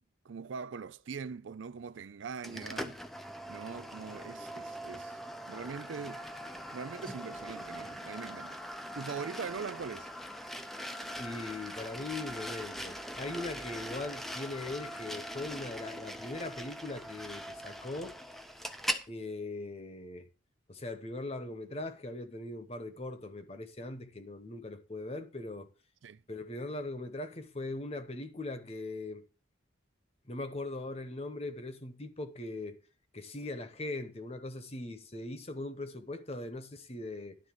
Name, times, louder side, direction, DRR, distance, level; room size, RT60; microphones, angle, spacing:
voice 1, 0.2-3.0 3.5-5.2 5.5-6.2 6.7-8.6 8.9-10.1 26.0-26.2, right 5 dB, 80° right, 0.5 m, -42 dB
sound 1, 2.4-19.1, equal, ahead, 0.6 m, -41 dB
voice 2, 11.2-18.2 19.1-20.3 20.7-25.7 26.3-29.2 30.3-32.8 33.1-37.4, left 2 dB, 30° left, 1.0 m, -40 dB
11.5 x 4.0 x 7.5 m
head